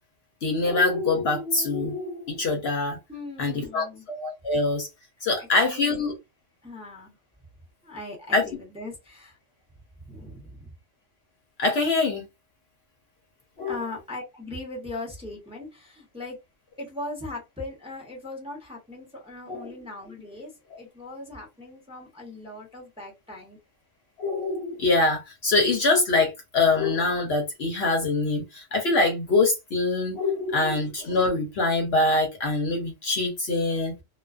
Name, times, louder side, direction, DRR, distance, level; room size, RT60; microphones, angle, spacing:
voice 1, 0.4-3.0 3.4-4.9 5.2-6.1 8.3-8.5 11.6-12.3 13.6-13.7 19.5-19.7 24.2-33.9, left 3 dB, 60° left, 0.8 m, -24 dB
voice 2, 3.1-4.1 5.2-6.0 6.6-7.1 7.8-9.4 10.0-10.7 13.7-16.4 16.8-23.6, left 2 dB, 5° right, 0.7 m, -39 dB
2.4 x 2.3 x 2.3 m
omnidirectional pair, 1.3 m